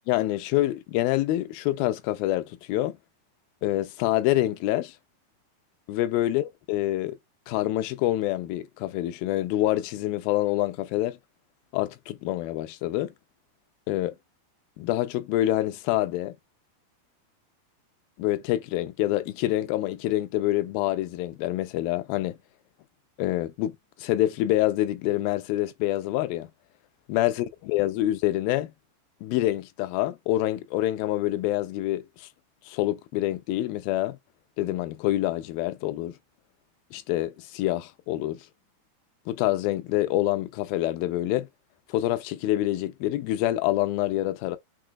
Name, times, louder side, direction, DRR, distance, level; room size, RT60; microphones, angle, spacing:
voice 1, 0.1-3.0 3.6-5.0 5.9-7.2 7.5-11.2 11.7-13.1 13.9-14.2 14.8-16.3 18.2-22.4 23.2-26.5 27.1-28.7 29.2-32.3 32.7-34.2 34.6-36.2 36.9-38.4 39.3-41.5 41.9-44.6, left 15 dB, 80° left, 2.3 m, -26 dB
6.3 x 2.7 x 2.3 m
omnidirectional pair, 4.4 m